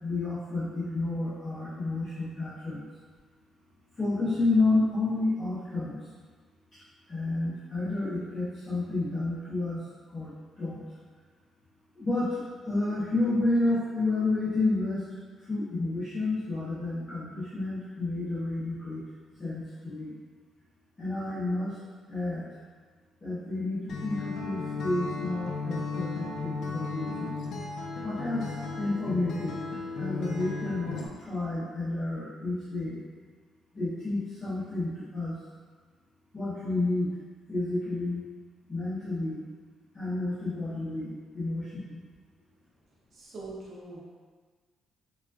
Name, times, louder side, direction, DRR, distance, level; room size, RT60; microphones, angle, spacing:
voice 1, 0.0-2.9 4.0-6.1 7.1-9.8 10.1-10.8 11.9-15.0 15.5-19.0 19.4-20.2 21.0-21.8 22.1-22.5 23.2-27.4 28.0-28.5 28.8-29.6 30.0-31.0 31.3-33.0 33.7-35.4 36.3-37.2 37.5-38.3 38.7-39.4 39.9-42.0, left 2 dB, 20° left, -14 dB, 0.8 m, -30 dB
Acoustic guitar, 23.9-31.1, left 4 dB, 55° left, 0.4 m, -35 dB
voice 2, 43.1-44.0, right 2 dB, 35° right, -6 dB, 0.6 m, -42 dB
3.6 x 2.4 x 2.3 m, 1.5 s
cardioid pair, 165°, 0 cm